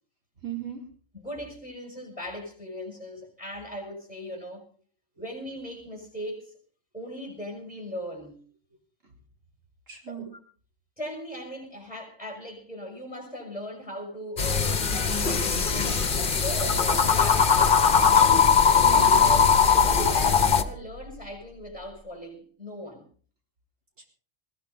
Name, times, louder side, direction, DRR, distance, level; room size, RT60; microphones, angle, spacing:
voice 1, 0.4-0.8 5.2-5.3 9.0-9.1 9.9-10.3 18.6-19.3 24.0-24.1, right 7 dB, 80° right, 4.4 m, -38 dB
voice 2, 1.2-4.7 5.2-6.5 6.9-8.4 10.2-10.3 11.0-16.0 16.3-18.1 18.9-19.4 19.7-23.0, equal, 5° right, 5.8 m, -38 dB
sound 1, 14.4-20.6, left 6 dB, 45° left, 1.4 m, -20 dB
sound 2, 18.6-22.0, right 2 dB, 50° right, 1.2 m, -40 dB
20.5 x 16.0 x 4.0 m
omnidirectional pair, 1.3 m